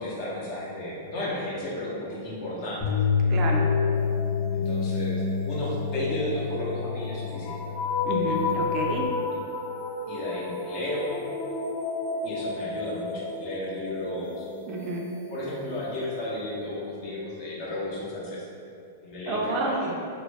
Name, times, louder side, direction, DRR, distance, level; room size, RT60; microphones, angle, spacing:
voice 1, 0.0-3.0 4.5-7.5 10.1-11.2 12.2-14.4 15.1-18.4 19.0-19.9, left 1 dB, 45° left, -6 dB, 0.8 m, -33 dB
sound 1, 2.8-9.1, left 6 dB, 10° left, 0.9 m, -28 dB
voice 2, 3.3-3.7 8.0-9.1 14.7-15.0 19.3-19.8, right 2 dB, 35° right, -1 dB, 0.3 m, -29 dB
sound 2, 3.5-16.2, left 3 dB, 80° left, 0.6 m, -33 dB
2.2 x 2.0 x 3.3 m, 2.4 s
hypercardioid pair, 140°, 0 cm